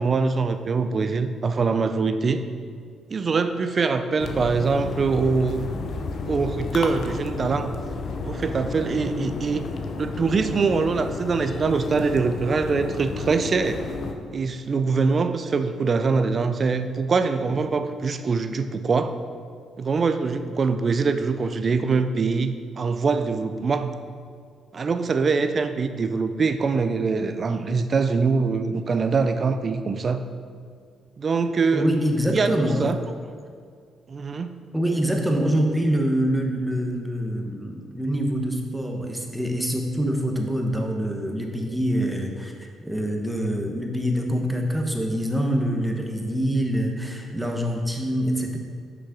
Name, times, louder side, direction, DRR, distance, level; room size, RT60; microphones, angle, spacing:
voice 1, 0.0-2.4 3.1-5.6 6.3-7.8 8.2-9.7 10.0-13.8 14.3-19.2 19.8-24.0 24.7-30.2 31.2-31.9 32.3-32.5 32.8-33.0 34.1-34.6, right 4 dB, 40° right, 9 dB, 0.5 m, -23 dB
sound 1, 4.2-14.1, left 3 dB, 60° left, 0.7 m, -32 dB
voice 2, 31.7-32.9 34.7-48.6, equal, 5° right, 2 dB, 1.0 m, -25 dB
6.1 x 5.5 x 5.0 m, 2.1 s
cardioid pair, 90°, 0 cm